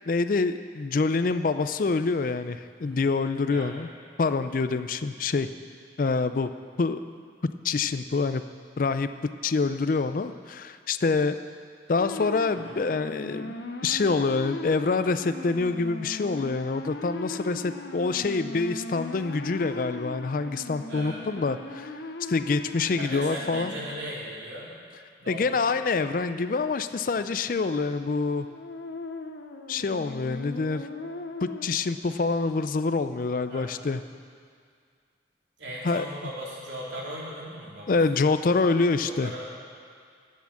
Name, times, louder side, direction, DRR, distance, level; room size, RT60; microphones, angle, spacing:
voice 1, 0.1-3.9 4.2-5.5 6.0-6.5 6.8-7.0 7.4-8.4 8.8-11.4 11.9-13.5 13.8-21.9 22.3-23.7 25.3-28.5 29.7-30.9 31.4-34.0 35.8-36.1 37.9-39.3, left 4 dB, 45° left, 11 dB, 0.4 m, -26 dB
sound 1, 12.0-24.3 28.5-31.7, left 2 dB, 65° left, 0.9 m, -38 dB
voice 2, 20.8-21.2 23.0-24.8 25.2-25.7 33.5-33.7 35.6-38.2 39.0-39.6, equal, 75° right, -5 dB, 3.2 m, -38 dB
11.5 x 8.5 x 7.3 m, 2.1 s
head